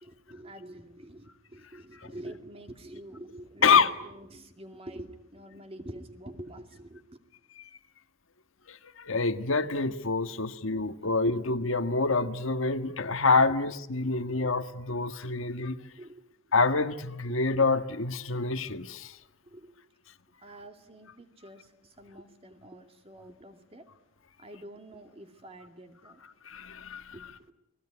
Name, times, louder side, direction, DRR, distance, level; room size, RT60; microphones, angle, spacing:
voice 1, 0.0-7.0 10.2-10.5 11.2-11.4 13.4-13.6 15.3-15.4 16.0-16.2 17.3-17.4 19.4-19.7 20.4-23.9 24.4-26.2 27.1-27.5, right 1 dB, 30° right, 6 dB, 2.4 m, -46 dB
voice 2, 8.7-15.8 16.5-19.2 26.4-27.1, left 4 dB, 85° left, 9 dB, 1.5 m, -27 dB
29.5 x 21.0 x 9.8 m, 0.91 s
head